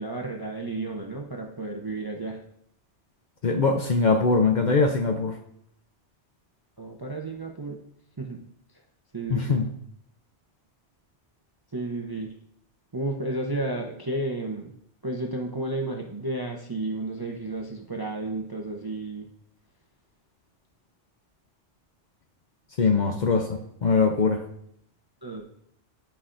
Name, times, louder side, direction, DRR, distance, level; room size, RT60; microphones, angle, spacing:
voice 1, 0.0-2.4 6.8-7.8 8.2-8.4 9.1-9.6 11.7-12.3 12.9-14.7 15.0-19.3 25.2-25.5, right 2 dB, 30° right, 1 dB, 0.5 m, -32 dB
voice 2, 3.4-5.4 9.3-9.7 22.8-24.4, left 4 dB, 50° left, 4 dB, 0.6 m, -22 dB
10.5 x 5.6 x 2.5 m, 0.70 s
omnidirectional pair, 1.2 m